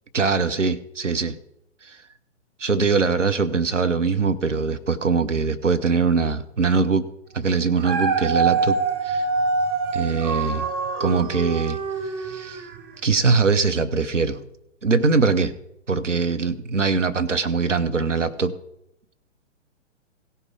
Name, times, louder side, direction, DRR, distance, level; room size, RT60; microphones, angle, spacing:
voice 1, 0.1-1.4 1.8-2.0 2.6-7.1 7.3-8.8 9.0-9.2 9.9-10.6 11.0-11.8 12.0-12.6 13.0-14.4 14.8-15.5 15.9-18.5, right 4 dB, 85° right, 9 dB, 0.8 m, -22 dB
Dog, 7.6-12.9 13.5-13.6, right 4 dB, 20° right, 0.7 m, -25 dB
16.5 x 5.6 x 4.8 m, 0.79 s
figure-of-eight pair, 120°, 36 cm